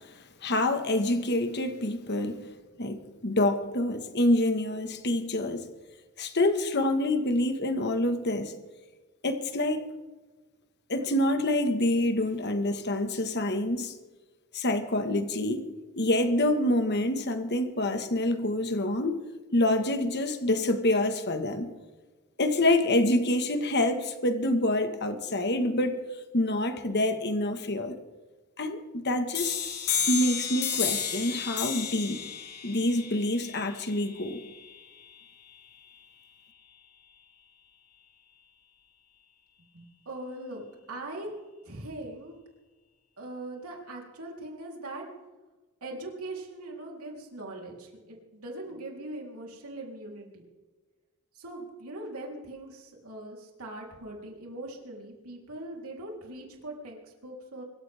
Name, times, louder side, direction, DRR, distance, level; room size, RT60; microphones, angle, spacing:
voice 1, 0.4-2.4 2.8-5.7 6.2-8.5 9.2-9.9 10.9-13.9 14.5-15.7 16.0-19.2 19.5-21.7 22.4-26.0 26.3-27.9 28.6-29.6 30.1-32.2 32.6-34.4, left 1 dB, 50° left, 1.7 m, -26 dB
sound 1, 29.3-34.8, left 7 dB, 90° left, 4.1 m, -32 dB
voice 2, 39.7-40.6 40.9-41.3 41.7-42.4 43.2-45.1 45.8-50.4 51.3-57.6, right 2 dB, 75° right, 3.8 m, -41 dB
25.0 x 13.5 x 3.6 m
head